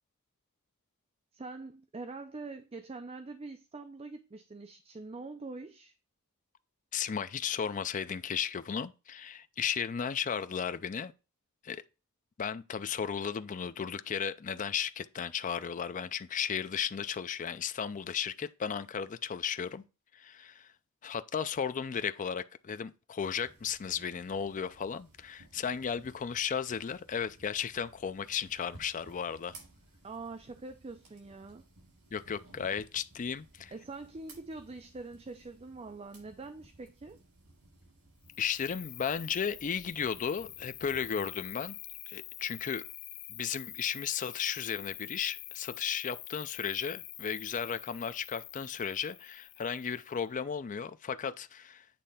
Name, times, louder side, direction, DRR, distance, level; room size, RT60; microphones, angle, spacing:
voice 1, 1.3-6.0 30.0-31.6 33.7-37.2, right 3 dB, 25° right, 0.5 m, -44 dB
voice 2, 6.9-11.1 11.6-11.8 12.4-19.8 20.1-20.7 21.0-29.5 32.1-33.7 38.4-41.8 42.1-42.8 43.3-51.9, left 7 dB, 35° left, 0.4 m, -35 dB
sound 1, 23.2-41.6, right 2 dB, 75° right, 4.6 m, -58 dB
Cricket, 38.3-50.2, left 14 dB, 80° left, 0.8 m, -46 dB
8.5 x 3.3 x 5.5 m
head